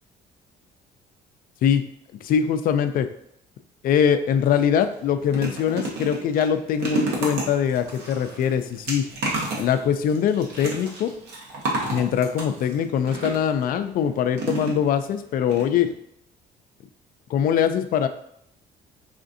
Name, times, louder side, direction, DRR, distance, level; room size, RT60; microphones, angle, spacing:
voice 1, 2.2-3.1 3.8-9.0 9.6-11.1 11.9-15.9 17.3-18.1, left 8 dB, 55° left, 9 dB, 0.4 m, -22 dB
sound 1, 4.5-4.6 4.9-13.6 14.3-15.1 15.5-15.6 15.9-16.0, right 2 dB, 85° right, 1.0 m, -31 dB
4.9 x 2.5 x 2.6 m, 0.74 s
cardioid pair, 110°, 17 cm